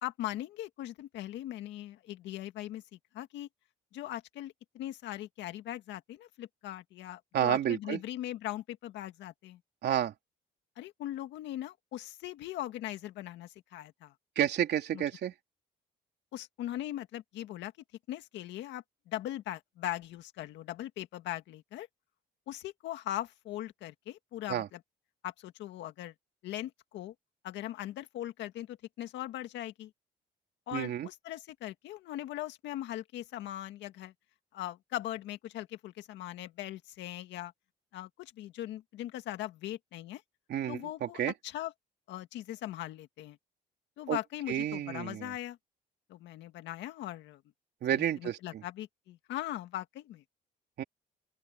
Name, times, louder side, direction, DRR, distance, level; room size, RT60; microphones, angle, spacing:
voice 1, 0.0-2.8 3.1-3.5 3.9-9.6 10.8-14.1 14.9-15.0 16.3-17.7 18.1-21.9 22.5-24.8 25.2-26.1 26.4-27.1 27.4-29.9 30.7-34.1 34.5-37.5 37.9-40.2 40.7-41.7 42.1-43.4 44.0-45.6 46.1-47.4 47.9-50.2, left 13 dB, 85° left, 1.9 m, -40 dB
voice 2, 7.3-8.0 9.8-10.1 14.4-15.3 24.5-24.7 30.7-31.1 40.5-41.3 44.1-44.2 44.5-45.3 47.8-48.6 50.8-50.9, right 10 dB, 70° right, 3.5 m, -30 dB
open air
cardioid pair, 95°, 18 cm